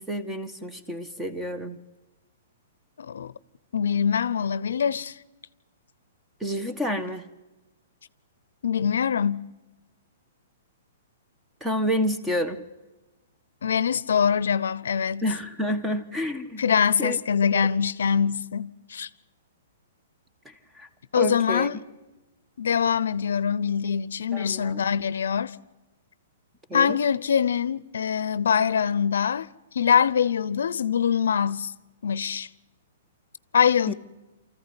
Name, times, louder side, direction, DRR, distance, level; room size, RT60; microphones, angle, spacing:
voice 1, 0.0-1.8 6.4-7.2 11.6-12.6 15.2-16.6 17.0-17.2 17.5-17.7 20.4-20.9 21.2-21.7 24.3-24.8 26.7-27.0 33.9-34.0, equal, 10° right, 1.5 m, -29 dB
voice 2, 3.0-3.3 3.7-5.2 8.6-9.5 13.6-15.2 16.6-19.1 21.1-21.8 22.6-25.6 26.7-29.5 29.7-31.7 32.0-32.5 33.5-33.9, left 7 dB, 80° left, 0.7 m, -24 dB
24.5 x 14.5 x 9.8 m
hypercardioid pair, 140°, 0 cm